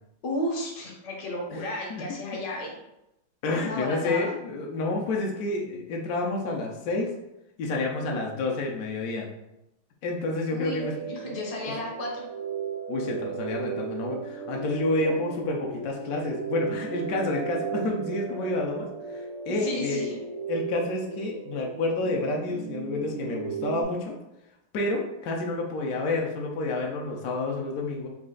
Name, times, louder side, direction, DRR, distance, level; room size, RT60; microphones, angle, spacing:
voice 1, 0.2-2.8 3.5-4.3 10.5-12.3 19.6-20.2, left 1 dB, 60° left, -1 dB, 1.3 m, -33 dB
voice 2, 3.4-7.1 7.6-9.3 10.0-10.9 11.2-11.3 12.9-20.1 20.5-24.1 24.7-28.1, left 2 dB, 75° left, 0 dB, 0.8 m, -29 dB
sound 1, 10.8-23.8, right 7 dB, 80° right, 1.4 m, -36 dB
4.2 x 2.4 x 3.7 m, 0.87 s
omnidirectional pair, 2.3 m